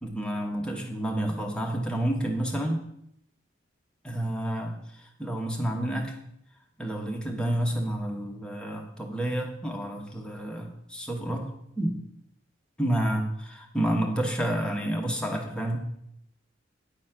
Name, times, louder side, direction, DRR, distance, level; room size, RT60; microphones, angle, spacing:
voice 1, 0.0-2.8 4.0-6.1 6.8-12.0 12.8-13.3 13.7-15.8, right 1 dB, 5° left, 0 dB, 1.1 m, -29 dB
9.9 x 4.2 x 5.8 m, 0.76 s
head